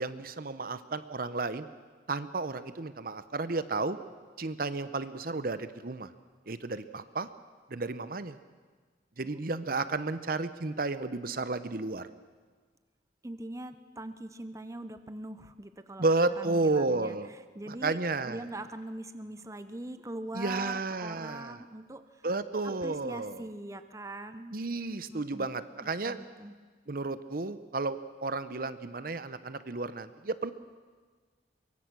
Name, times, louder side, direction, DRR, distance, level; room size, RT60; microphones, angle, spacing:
voice 1, 0.0-1.7 2.1-4.0 4.4-6.1 6.5-7.3 7.7-8.4 9.2-12.1 16.0-17.3 17.7-18.4 20.3-21.6 22.2-23.5 24.5-26.2 26.9-30.5, right 3 dB, 50° right, 13 dB, 0.8 m, -32 dB
voice 2, 13.2-16.0 16.4-18.0 18.2-22.3 22.6-24.6 25.1-25.5 25.8-26.5, right 1 dB, 15° right, 10 dB, 0.8 m, -42 dB
23.5 x 23.0 x 6.2 m, 1.5 s
head